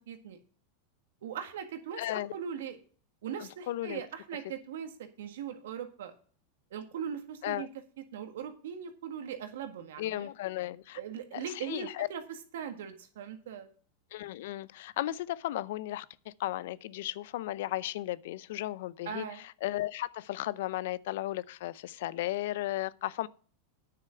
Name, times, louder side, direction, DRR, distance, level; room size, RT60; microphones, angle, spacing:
voice 1, 0.1-0.4 1.2-2.8 3.2-6.1 6.7-7.7 8.1-10.3 10.9-12.2 12.5-13.7 19.0-19.4, right 8 dB, 80° right, 1.7 m, -40 dB
voice 2, 2.0-2.3 3.4-4.0 7.4-7.7 10.0-11.0 11.3-12.1 14.1-19.3 19.6-23.3, left 15 dB, 70° left, 0.5 m, -35 dB
9.4 x 6.8 x 5.7 m
hypercardioid pair, 115°, 0 cm